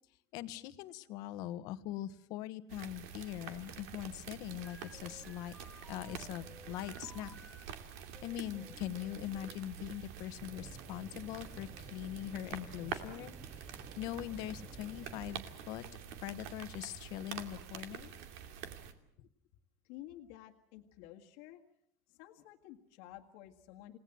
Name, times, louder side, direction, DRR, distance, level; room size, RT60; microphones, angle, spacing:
voice 1, 0.3-5.5 5.9-7.4 8.2-13.6 14.0-15.8 16.2-18.1, left 13 dB, 55° left, 13 dB, 1.3 m, -42 dB
sound 1, 2.7-18.9, right 8 dB, 75° right, 2.6 m, -47 dB
sound 2, 4.6-7.6 8.1-9.7, left 1 dB, 5° left, 1.0 m, -57 dB
sound 3, 10.4-15.4, right 4 dB, 20° right, 6.0 m, -52 dB
voice 2, 19.8-21.6 22.1-24.0, left 13 dB, 75° left, 2 dB, 1.8 m, -52 dB
29.5 x 18.5 x 7.8 m, 0.74 s
cardioid pair, 155°, 8 cm